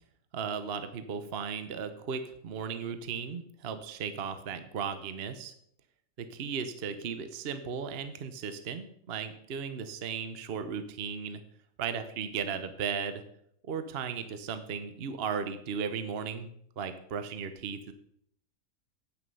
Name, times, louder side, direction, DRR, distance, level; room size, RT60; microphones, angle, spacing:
voice 1, 0.3-5.5 6.2-11.4 11.8-13.2 13.7-16.5 16.8-17.9, right 6 dB, 45° right, 9 dB, 1.0 m, -36 dB
9.6 x 8.8 x 5.4 m, 0.69 s
omnidirectional pair, 1.7 m